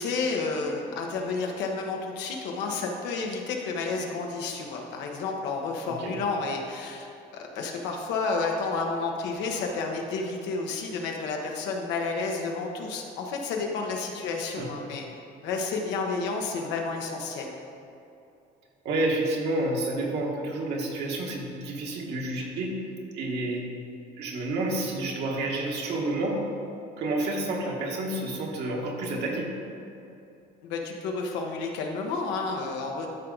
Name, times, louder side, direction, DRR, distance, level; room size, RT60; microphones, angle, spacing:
voice 1, 0.0-7.1 7.3-15.0 15.4-17.5 30.6-33.1, left 4 dB, 90° left, 1 dB, 1.2 m, -31 dB
voice 2, 5.9-6.2 14.6-14.7 18.8-22.7 23.1-23.7 24.2-26.4 27.0-29.5, right 2 dB, 70° right, -1 dB, 1.6 m, -29 dB
12.5 x 4.6 x 4.0 m, 2.7 s
cardioid pair, 125°, 18 cm